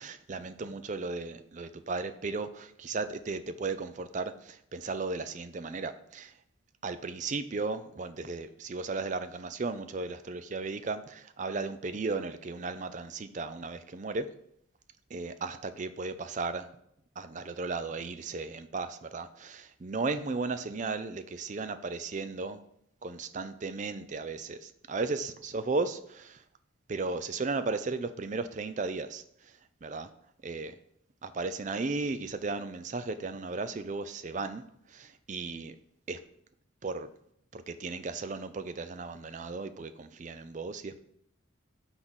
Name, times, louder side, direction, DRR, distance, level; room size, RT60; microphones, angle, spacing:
voice 1, 0.0-6.3 6.8-14.3 15.1-16.7 17.2-22.6 23.0-26.4 26.9-30.1 30.4-30.8 31.2-35.8 36.1-36.2 36.8-37.1 37.5-41.0, right 3 dB, 35° right, 11 dB, 0.4 m, -35 dB
5.9 x 3.9 x 6.1 m, 0.72 s
head